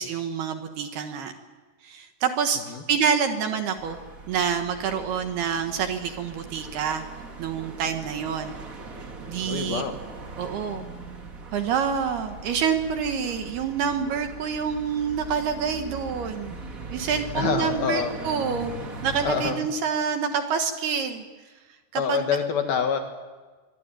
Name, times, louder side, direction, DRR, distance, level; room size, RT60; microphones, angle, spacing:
voice 1, 0.0-1.3 1.8-2.6 2.9-4.0 4.3-7.0 7.4-8.6 9.3-9.8 10.4-10.9 11.5-16.6 16.9-18.7 19.0-21.3 21.9-22.2, right 7 dB, 65° right, 6 dB, 2.9 m, -27 dB
sound 1, 3.8-19.5, right 3 dB, 50° right, 0.9 m, -40 dB
voice 2, 9.5-10.0 17.3-18.1 19.2-19.6 21.9-23.0, left 6 dB, 60° left, 5 dB, 3.1 m, -26 dB
25.5 x 22.0 x 9.1 m, 1.3 s
omnidirectional pair, 5.6 m